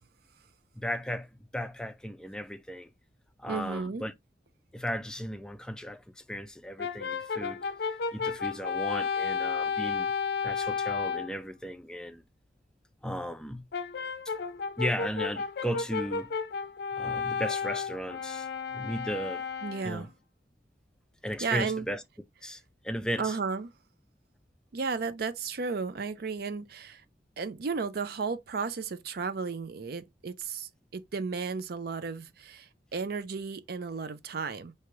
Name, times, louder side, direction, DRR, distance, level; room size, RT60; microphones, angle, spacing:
voice 1, 0.8-1.3 1.5-2.9 3.4-4.1 4.7-7.6 8.1-10.1 10.4-12.2 13.0-13.7 14.8-16.3 17.0-18.5 18.7-19.5 19.8-20.1 21.2-22.0 22.4-23.4, equal, 5° left, 0.4 m, -35 dB
voice 2, 3.5-4.0 19.6-20.1 21.4-21.8 23.2-23.7 24.7-27.0 27.4-34.7, right 5 dB, 60° right, 0.5 m, -34 dB
Brass instrument, 6.8-11.4 13.7-20.1, left 5 dB, 60° left, 0.5 m, -33 dB
4.7 x 2.9 x 3.1 m
head